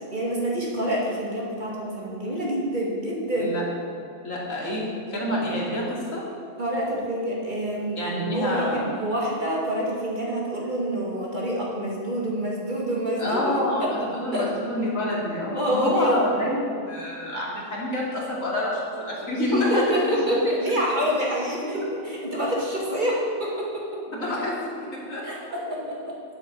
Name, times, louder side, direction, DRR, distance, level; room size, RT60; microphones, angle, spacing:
voice 1, 0.1-3.5 5.2-5.4 6.6-13.5 13.8-13.9 14.3-14.5 15.5-16.2 19.5-24.0 25.2-26.1, equal, 40° right, -4 dB, 2.6 m, -27 dB
voice 2, 3.3-3.7 4.2-6.3 8.0-8.9 13.2-20.2 24.1-25.3, left 1 dB, 90° left, -4 dB, 3.0 m, -27 dB
10.0 x 7.9 x 7.7 m, 2.5 s
omnidirectional pair, 1.3 m